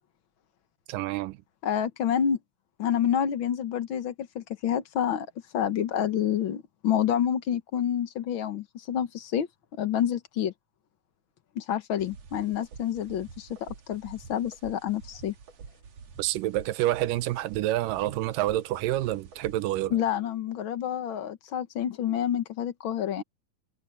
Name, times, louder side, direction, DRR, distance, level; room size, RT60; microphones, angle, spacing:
voice 1, 0.9-1.4 16.2-20.0, right 15 dB, 85° right, 2.4 m, -28 dB
voice 2, 1.6-2.4 2.8-5.3 5.5-9.5 9.8-10.5 11.5-15.3 19.9-23.2, left 9 dB, 60° left, 1.3 m, -28 dB
sound 1, 12.0-19.7, right 5 dB, 55° right, 2.8 m, -48 dB
omnidirectional pair, 3.8 m